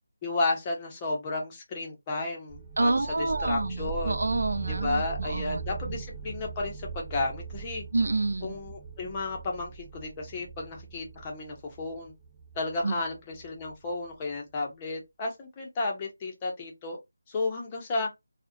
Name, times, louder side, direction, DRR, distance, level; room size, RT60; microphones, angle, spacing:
voice 1, 0.2-2.9 3.2-4.1 4.7-7.8 8.4-12.1 12.5-17.0 17.3-18.1, left 3 dB, 20° left, 0.6 m, -33 dB
sound 1, 2.5-13.9, right 6 dB, 20° right, 1.1 m, -40 dB
voice 2, 2.8-6.0 7.9-8.6 12.8-13.0, right 2 dB, 70° right, 0.3 m, -28 dB
2.3 x 2.0 x 2.6 m
figure-of-eight pair, 170°, 0 cm